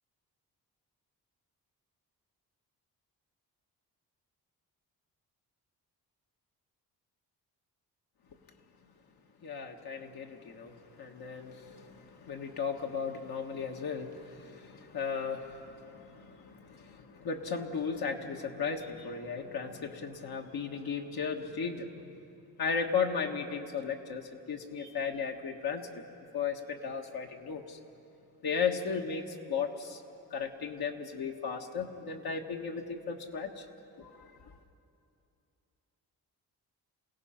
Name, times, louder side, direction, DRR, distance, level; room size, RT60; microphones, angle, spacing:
voice 1, 9.4-22.1 22.6-25.9 26.3-27.8 28.4-30.0 30.3-33.6 34.0-34.5, left 6 dB, 70° left, 2 dB, 1.6 m, -36 dB
27.5 x 17.0 x 5.8 m, 2.6 s
cardioid pair, 80°, 38 cm